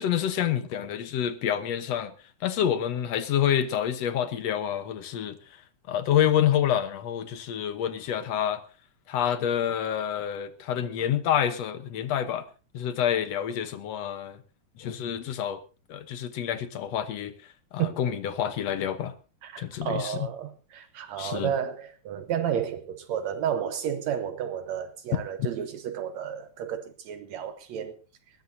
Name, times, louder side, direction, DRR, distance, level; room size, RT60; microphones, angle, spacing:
voice 1, 0.0-2.1 2.4-5.4 5.9-8.6 9.1-12.5 12.7-14.4 14.8-15.6 15.9-17.3 17.7-19.1 19.6-20.2 21.2-21.5, left 10 dB, 65° left, 2.0 m, -27 dB
voice 2, 19.4-28.0, right 9 dB, 70° right, 2.1 m, -32 dB
20.5 x 17.0 x 2.7 m
omnidirectional pair, 3.5 m